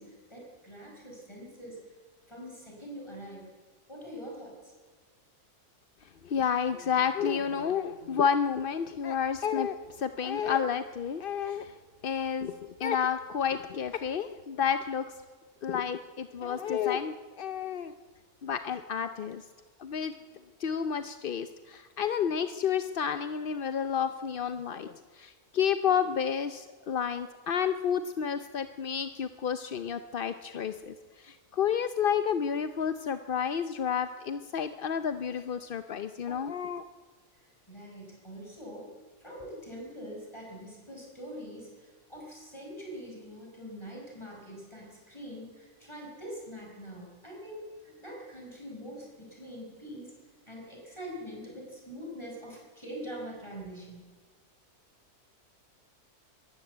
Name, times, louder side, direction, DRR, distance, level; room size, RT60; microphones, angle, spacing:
voice 1, 0.0-1.8 2.3-3.5 3.9-4.7 37.7-38.9 39.2-50.1 50.5-54.0, equal, 15° left, -1 dB, 5.4 m, -44 dB
voice 2, 6.2-11.7 12.0-15.1 15.6-17.9 18.4-19.4 19.8-20.1 20.6-30.9 31.2-36.8, left 7 dB, 50° left, 11 dB, 0.6 m, -30 dB
22.5 x 15.0 x 8.0 m, 1.5 s
omnidirectional pair, 1.6 m